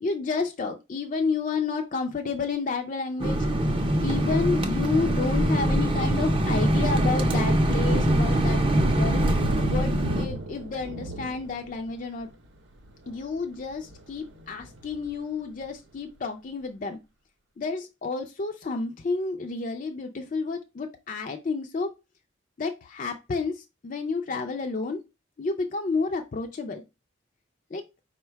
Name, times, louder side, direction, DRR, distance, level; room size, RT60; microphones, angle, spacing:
voice 1, 0.0-3.4 4.0-9.2 9.7-12.3 13.1-17.0 17.6-21.9 22.6-25.0 25.4-26.8 27.7-27.8, left 4 dB, 40° left, 4 dB, 0.4 m, -30 dB
sound 1, 3.2-10.3, right 1 dB, 25° right, 0.5 m, -23 dB
Thunder, 5.4-15.9, right 1 dB, 70° right, 0.7 m, -37 dB
4.9 x 2.2 x 4.5 m, 0.26 s
head